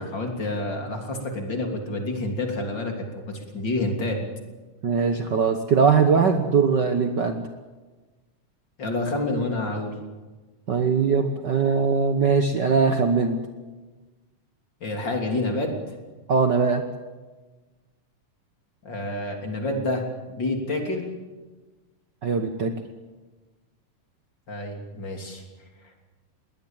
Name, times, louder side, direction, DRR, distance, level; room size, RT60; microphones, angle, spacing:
voice 1, 0.0-4.2 8.8-9.9 14.8-15.7 18.8-21.0 24.5-25.4, left 2 dB, 35° left, 3 dB, 3.5 m, -28 dB
voice 2, 4.8-7.5 10.7-13.4 16.3-16.8 22.2-22.7, right 5 dB, 85° right, 6 dB, 0.9 m, -21 dB
22.0 x 18.5 x 8.9 m, 1.3 s
omnidirectional pair, 3.8 m